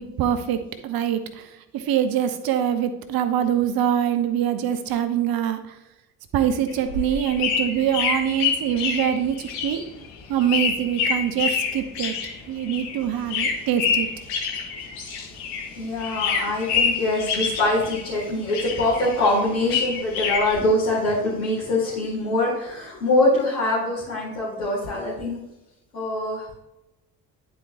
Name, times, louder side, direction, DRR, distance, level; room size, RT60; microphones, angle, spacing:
voice 1, 0.0-1.5 1.7-5.7 6.3-9.8 10.3-12.1 12.5-14.1, right 9 dB, 50° right, 10 dB, 0.9 m, -24 dB
sound 1, 6.7-15.7 16.0-18.2 18.5-20.6, left 5 dB, 65° left, 1.5 m, -27 dB
voice 2, 14.9-25.4 25.9-26.5, left 2 dB, 85° left, -13 dB, 2.4 m, -24 dB
11.0 x 4.5 x 2.9 m, 0.93 s
figure-of-eight pair, 50°, 47 cm